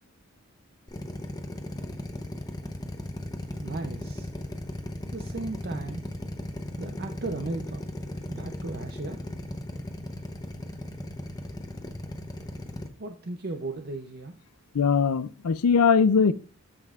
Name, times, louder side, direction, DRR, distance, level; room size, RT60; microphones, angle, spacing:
Drill, 0.9-12.9, left 1 dB, 15° left, 0.7 m, -36 dB
voice 1, 3.6-4.3 5.1-6.1 6.8-7.8 8.3-9.3 13.0-14.3, right 3 dB, 45° right, 0.6 m, -36 dB
voice 2, 14.7-16.3, left 6 dB, 90° left, 0.5 m, -21 dB
13.5 x 5.5 x 2.4 m
head